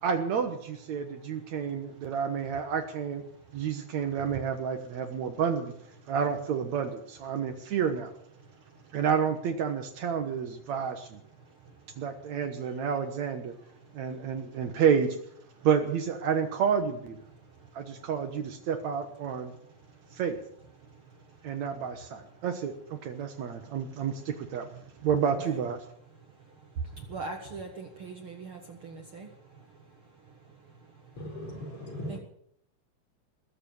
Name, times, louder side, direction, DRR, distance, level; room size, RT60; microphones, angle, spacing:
voice 1, 0.0-3.2 3.5-5.7 6.1-8.1 8.9-11.2 12.0-13.5 13.9-15.2 15.6-17.2 17.7-19.5 20.1-20.4 21.4-25.8, right 7 dB, 65° right, 7 dB, 2.4 m, -30 dB
voice 2, 27.1-29.3 32.1-32.2, right 3 dB, 50° right, 3 dB, 2.1 m, -40 dB
voice 3, 31.2-32.2, equal, 40° left, 0 dB, 5.7 m, -38 dB
20.0 x 7.8 x 9.0 m, 0.69 s
omnidirectional pair, 3.6 m